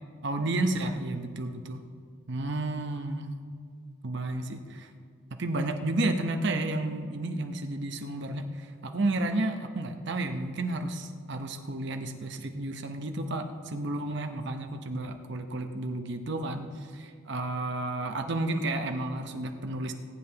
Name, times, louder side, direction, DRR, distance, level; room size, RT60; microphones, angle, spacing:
voice 1, 0.2-1.8 2.3-3.3 4.0-4.9 5.4-19.9, right 2 dB, 55° right, 6 dB, 0.8 m, -31 dB
19.5 x 9.8 x 2.9 m, 2.1 s
head